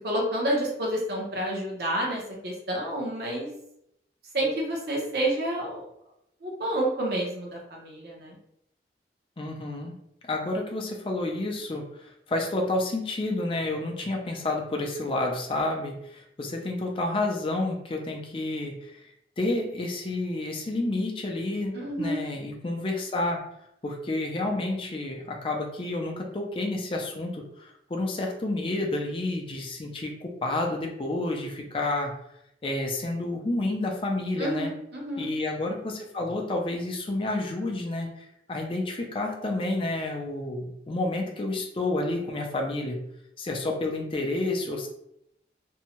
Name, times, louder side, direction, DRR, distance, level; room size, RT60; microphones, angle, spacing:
voice 1, 0.0-3.5 4.3-5.9 6.4-8.4 21.7-22.2 34.4-35.3, right 1 dB, 60° right, -2 dB, 0.8 m, -29 dB
voice 2, 9.4-9.9 10.3-19.0 19.4-23.4 23.8-32.1 32.6-34.7 35.2-43.0 43.4-44.9, left 2 dB, 30° left, 1 dB, 0.4 m, -30 dB
2.7 x 2.2 x 2.9 m, 0.77 s
head